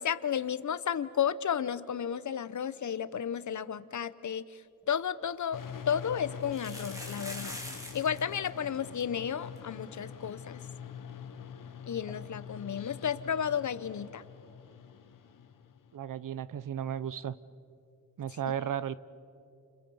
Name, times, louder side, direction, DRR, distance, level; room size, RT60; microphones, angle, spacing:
voice 1, 0.0-4.4 4.9-7.6 7.9-10.6 11.9-14.2, left 8 dB, 65° left, 16 dB, 0.8 m, -33 dB
sound 1, 4.8-4.9 5.2-5.3 6.4-8.2 8.5-8.6 8.7-9.0 9.6-9.7 9.9-10.0 12.1-12.2, equal, 10° right, 3.4 m, -43 dB
sound 2, 5.5-15.9, left 8 dB, 80° left, 1.0 m, -45 dB
voice 2, 15.9-17.4 18.2-19.0, right 9 dB, 80° right, 17 dB, 0.7 m, -34 dB
30.0 x 29.0 x 5.5 m, 2.7 s
wide cardioid pair, 130°, 32 cm